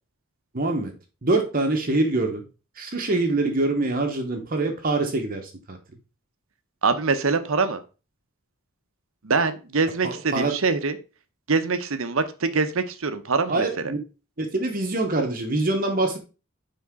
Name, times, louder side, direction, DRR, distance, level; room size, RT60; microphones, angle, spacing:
voice 1, 0.5-0.9 1.2-2.4 2.8-5.8 10.0-10.5 13.5-14.0 14.4-16.2, right 2 dB, 40° right, 1.0 m, -24 dB
voice 2, 6.8-7.8 9.2-11.0 11.5-13.9, right 4 dB, 65° right, 0.8 m, -24 dB
9.5 x 3.7 x 3.6 m
head